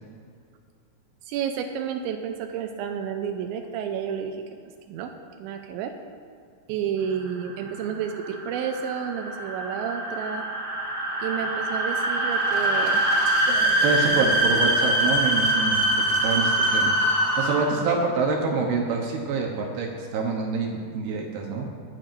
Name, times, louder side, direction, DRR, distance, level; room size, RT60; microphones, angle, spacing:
voice 1, 1.2-4.4 4.9-5.1 5.4-5.9 6.7-10.5 11.2-13.0, right 8 dB, 85° right, 4 dB, 3.0 m, -30 dB
sound 1, 7.2-17.9, right 1 dB, 30° right, 3.0 m, -24 dB
voice 2, 13.5-17.0 17.4-21.7, right 4 dB, 70° right, 1 dB, 2.6 m, -26 dB
24.0 x 9.3 x 2.6 m, 2.2 s
omnidirectional pair, 5.2 m